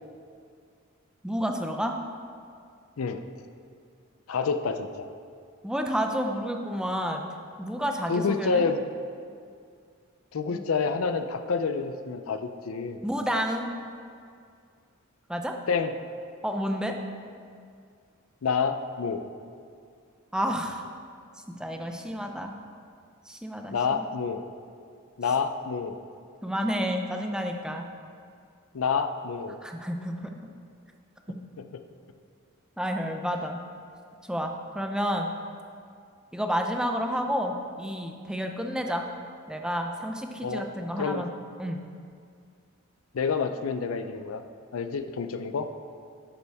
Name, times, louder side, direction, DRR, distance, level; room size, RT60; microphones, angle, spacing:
voice 1, 1.2-2.0 5.6-7.3 7.6-8.6 10.5-10.7 13.0-13.7 15.3-15.5 16.4-17.0 20.3-20.8 21.5-22.5 23.3-24.0 26.4-27.9 29.6-30.5 32.8-33.6 34.3-35.3 36.3-39.1 39.5-41.3 41.6-41.8, equal, 5° right, 3 dB, 0.5 m, -30 dB
voice 2, 4.3-5.1 8.1-8.8 10.3-13.0 15.7-15.9 18.4-19.2 23.7-24.4 25.2-26.0 28.7-29.6 40.4-40.6 41.0-41.2 43.1-44.4 44.7-45.7, left 5 dB, 75° left, 9 dB, 0.5 m, -28 dB
11.0 x 6.9 x 3.5 m, 2.3 s
head